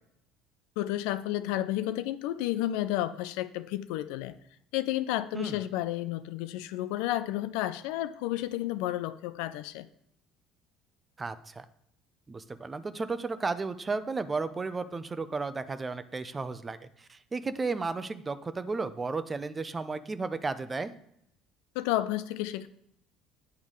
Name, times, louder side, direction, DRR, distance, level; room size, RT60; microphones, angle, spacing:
voice 1, 0.8-4.4 4.7-9.9 21.8-22.7, left 14 dB, 75° left, 13 dB, 0.4 m, -31 dB
voice 2, 11.2-11.6 12.3-20.9, right 4 dB, 25° right, 12 dB, 0.6 m, -34 dB
8.9 x 3.6 x 6.4 m, 0.77 s
hypercardioid pair, 70°, 0 cm